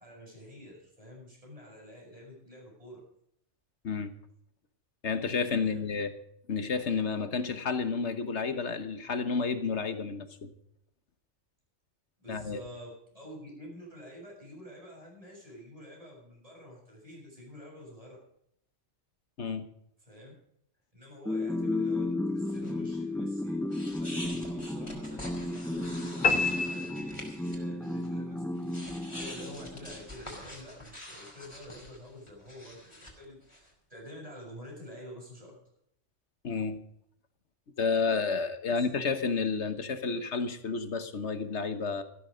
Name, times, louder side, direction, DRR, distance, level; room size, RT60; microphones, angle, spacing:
voice 1, 0.0-3.0 5.6-5.9 12.2-18.2 20.1-20.3 20.9-23.6 24.0-28.4 29.1-35.5 38.7-39.1, left 1 dB, 30° right, -2 dB, 7.3 m, -48 dB
voice 2, 5.0-6.1 6.5-10.5 12.3-12.6 19.4-19.7 36.4-36.8 37.8-42.0, left 5 dB, 70° left, 10 dB, 1.6 m, -31 dB
sound 1, 21.2-30.0, left 2 dB, 5° left, 0.4 m, -33 dB
sound 2, 22.5-22.7 23.7-27.6 27.8-28.1 28.6-33.7, left 1 dB, 25° left, 3.8 m, -46 dB
sound 3, 26.2-27.8, left 4 dB, 45° left, 1.2 m, -29 dB
14.5 x 13.0 x 5.1 m, 0.71 s
omnidirectional pair, 1.2 m